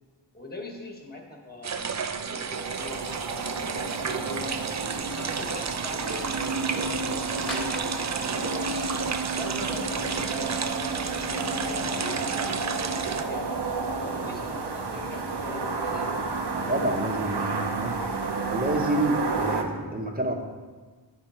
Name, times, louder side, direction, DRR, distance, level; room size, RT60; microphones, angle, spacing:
voice 1, 0.3-4.6 5.0-7.0 8.0-8.9 9.3-12.2 12.6-16.2 17.3-17.5, left 2 dB, 20° left, 0 dB, 1.3 m, -42 dB
sound 1, 1.6-13.2, right 6 dB, 40° right, 0.4 m, -32 dB
sound 2, 2.3-19.6, right 3 dB, 65° right, 0.8 m, -31 dB
sound 3, 6.0-9.3 9.7-12.2, equal, ahead, 1.3 m, -44 dB
voice 2, 16.5-18.1 18.5-20.3, right 1 dB, 20° right, 2 dB, 0.9 m, -28 dB
9.7 x 4.3 x 4.3 m, 1.4 s
wide cardioid pair, 65°, 43 cm